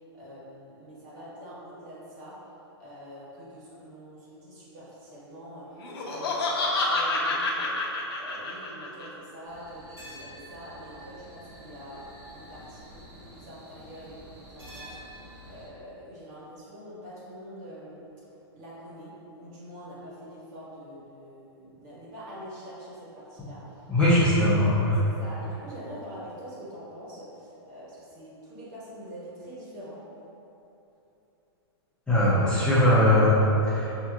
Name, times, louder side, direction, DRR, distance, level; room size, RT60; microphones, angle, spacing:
voice 1, 0.1-2.4 2.8-7.8 8.2-12.1 12.3-18.1 18.5-23.9 25.0-30.0, equal, 45° right, -8 dB, 1.4 m, -45 dB
Laughter, 5.8-9.1, left 2 dB, 60° left, 0.7 m, -28 dB
sound 1, 9.5-15.7, equal, 20° right, 1.1 m, -48 dB
voice 2, 23.9-25.0 32.1-33.9, left 1 dB, 5° left, -11 dB, 0.5 m, -20 dB
5.3 x 2.9 x 2.3 m, 3.0 s
hypercardioid pair, 150°, 14 cm